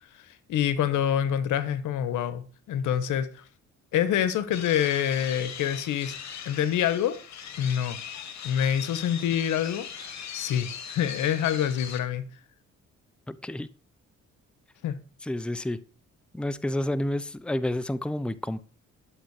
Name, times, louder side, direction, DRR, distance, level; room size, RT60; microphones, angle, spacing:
voice 1, 0.2-3.4 3.9-6.2 6.4-7.2 7.6-8.0 8.4-9.9 10.3-12.2 14.8-15.0, left 9 dB, 85° left, 1.2 m, -26 dB
sound 1, 4.5-12.0, left 8 dB, 65° left, 2.0 m, -40 dB
voice 2, 13.3-13.7 15.2-15.8 16.3-18.6, left 1 dB, 5° left, 0.7 m, -30 dB
11.5 x 7.4 x 4.8 m
cardioid pair, 90°, 30 cm